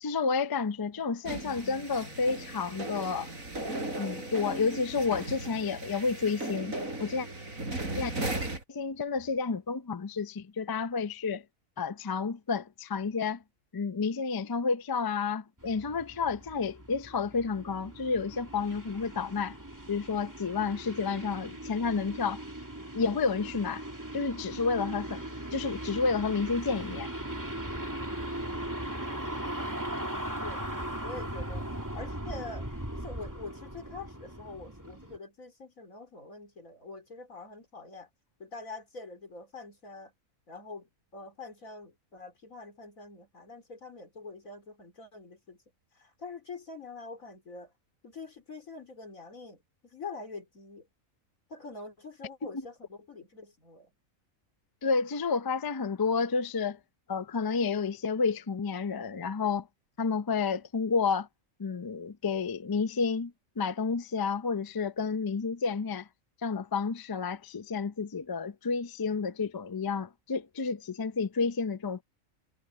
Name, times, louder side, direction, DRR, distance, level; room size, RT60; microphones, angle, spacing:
voice 1, 0.0-3.3 4.0-7.3 7.9-8.1 8.7-11.4 11.8-13.4 13.7-19.6 19.9-22.4 22.9-23.8 24.1-25.2 25.5-27.1 54.8-56.8 57.1-59.7 60.0-61.3 61.6-66.1 66.4-72.0, left 5 dB, 35° left, 0.3 m, -30 dB
sound 1, 1.3-8.6, right 2 dB, 85° right, 5.1 m, -37 dB
sound 2, 15.6-35.2, right 1 dB, 15° right, 2.6 m, -39 dB
voice 2, 31.0-32.7 32.9-38.1 38.4-40.1 40.5-45.6 45.9-47.7 48.0-50.9 51.5-53.9, left 3 dB, 85° left, 4.9 m, -45 dB
omnidirectional pair, 1.4 m